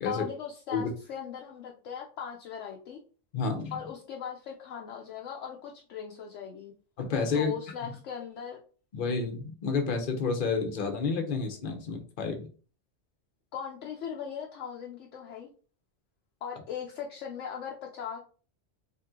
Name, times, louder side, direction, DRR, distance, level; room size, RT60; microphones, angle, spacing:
voice 1, 0.0-3.0 3.7-6.7 7.3-8.6 13.5-15.5 16.4-18.2, left 8 dB, 75° left, 0 dB, 1.0 m, -39 dB
voice 2, 3.3-3.7 7.0-7.5 8.9-12.5, left 4 dB, 50° left, 4 dB, 0.9 m, -30 dB
3.6 x 2.9 x 3.6 m, 0.39 s
omnidirectional pair, 1.3 m